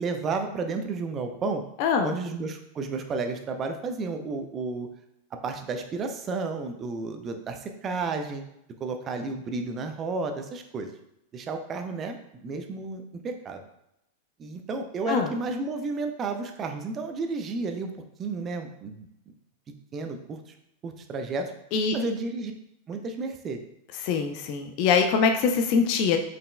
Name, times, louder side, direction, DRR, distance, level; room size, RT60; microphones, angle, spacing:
voice 1, 0.0-1.6 2.0-4.9 5.4-8.4 8.8-10.9 11.3-13.6 14.4-17.9 18.2-19.1 19.9-20.4 20.8-21.5 21.9-22.5 22.9-23.6, right 3 dB, 25° right, 5 dB, 0.5 m, -32 dB
voice 2, 1.8-2.2 15.1-15.3 21.7-22.0 24.0-26.2, left 5 dB, 45° left, 5 dB, 0.5 m, -23 dB
5.2 x 4.1 x 2.2 m, 0.80 s
figure-of-eight pair, 90°, 0 cm